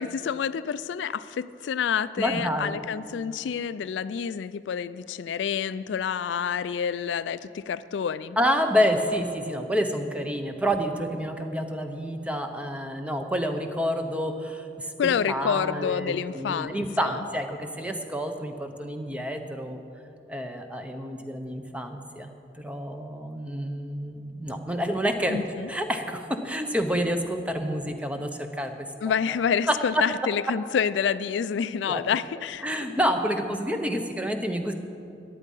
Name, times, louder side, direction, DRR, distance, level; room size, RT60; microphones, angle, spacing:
voice 1, 0.0-8.4 15.0-17.2 25.3-25.7 29.0-32.8, left 7 dB, 75° left, 15 dB, 0.3 m, -28 dB
voice 2, 2.2-2.8 8.4-14.9 15.3-19.8 20.3-25.4 25.7-28.9 29.7-30.0 31.9-32.0 32.6-34.7, equal, 5° right, 5 dB, 0.7 m, -28 dB
14.5 x 10.0 x 5.4 m, 2.7 s
head